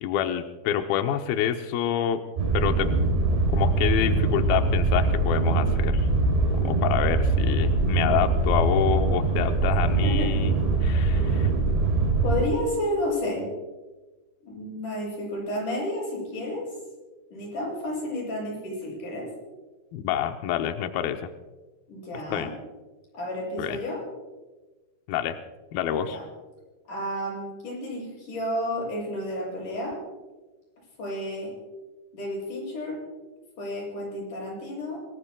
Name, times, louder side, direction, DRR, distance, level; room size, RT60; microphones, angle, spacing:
voice 1, 0.0-2.2 2.5-2.9 3.5-6.1 6.6-10.5 10.8-11.5 19.9-21.2 22.3-22.5 23.6-23.8 25.1-25.4 25.7-26.2, left 10 dB, 80° left, 6 dB, 2.1 m, -27 dB
sound 1, 2.4-12.5, right 3 dB, 70° right, 6.1 m, -23 dB
voice 2, 12.2-13.5 14.4-16.7 17.3-19.3 21.9-22.5 23.1-24.0 26.1-26.2 26.9-30.0 31.0-31.5 32.1-33.0 33.6-35.1, left 1 dB, 45° left, -3 dB, 8.8 m, -31 dB
29.0 x 19.5 x 2.3 m, 1.2 s
omnidirectional pair, 5.1 m